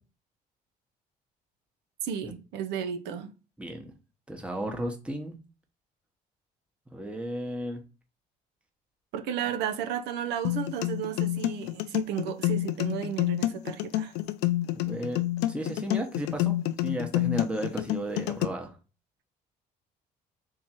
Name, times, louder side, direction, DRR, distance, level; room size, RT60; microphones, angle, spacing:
voice 1, 2.0-3.3 9.1-14.2, right 9 dB, 80° right, 0.5 m, -33 dB
voice 2, 3.6-3.9 4.3-5.4 6.9-7.8 14.7-16.5 16.8-18.7, right 1 dB, 5° right, 0.9 m, -34 dB
sound 1, 10.4-18.4, left 15 dB, 85° left, 0.4 m, -28 dB
3.6 x 2.8 x 4.2 m
cardioid pair, 110°, 17 cm